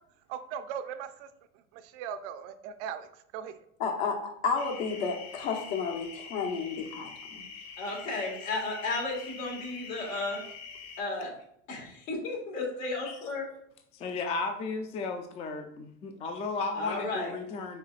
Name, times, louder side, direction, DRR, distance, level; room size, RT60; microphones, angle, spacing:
voice 1, 0.3-1.3 1.7-3.6, right 8 dB, 65° right, 10 dB, 0.6 m, -39 dB
voice 2, 3.8-7.4 13.0-13.2, left 5 dB, 70° left, 1 dB, 1.2 m, -32 dB
sound 1, 4.6-11.0, left 5 dB, 50° left, 1.6 m, -45 dB
voice 3, 7.8-10.4 11.0-11.3 11.7-13.5 16.7-17.3, left 3 dB, 85° left, -1 dB, 1.8 m, -33 dB
voice 4, 13.9-17.8, left 3 dB, 15° left, 6 dB, 0.3 m, -34 dB
5.8 x 3.5 x 2.4 m, 0.72 s
supercardioid pair, 110°, 40 cm